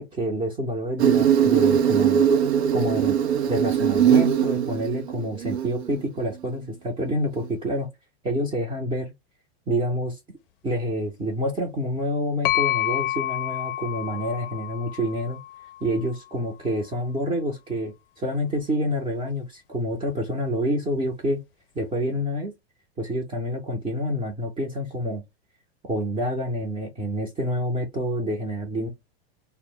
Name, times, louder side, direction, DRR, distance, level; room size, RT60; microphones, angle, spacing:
voice 1, 0.0-2.3 2.7-3.2 3.5-7.9 8.2-9.1 9.7-10.2 10.6-15.4 15.8-21.4 21.8-22.5 23.0-25.2 25.8-28.9, equal, 15° right, 0.6 m, -28 dB
Insect, 1.0-6.0, right 8 dB, 85° right, 0.6 m, -21 dB
sound 1, 12.4-16.2, left 14 dB, 60° left, 0.5 m, -29 dB
2.0 x 2.0 x 3.6 m
hypercardioid pair, 115°, 32 cm